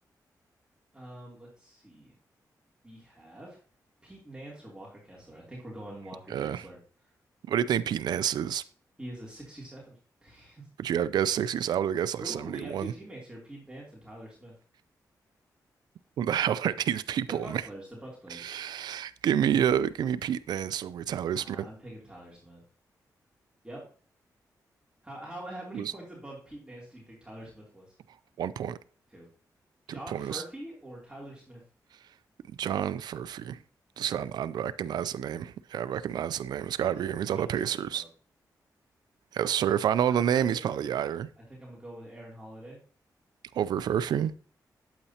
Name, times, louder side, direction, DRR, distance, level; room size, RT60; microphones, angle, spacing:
voice 1, 0.9-2.1 2.8-3.6 4.0-6.8 7.0-7.1 9.0-10.7 12.2-14.5 17.3-18.5 21.3-22.6 23.6-23.8 25.0-27.9 29.1-29.3 29.9-31.6 34.0-34.3 36.8-38.1 40.1-40.9 41.4-42.8, right 1 dB, 15° right, 3.1 m, -45 dB
voice 2, 6.3-6.6 7.5-8.6 10.8-12.9 16.2-17.6 18.3-21.7 25.7-25.9 28.4-28.8 30.1-30.4 32.6-33.6 34.0-38.0 39.3-41.3 43.5-44.3, right 9 dB, 85° right, 0.4 m, -29 dB
8.7 x 8.2 x 2.8 m
cardioid pair, 80°, 7 cm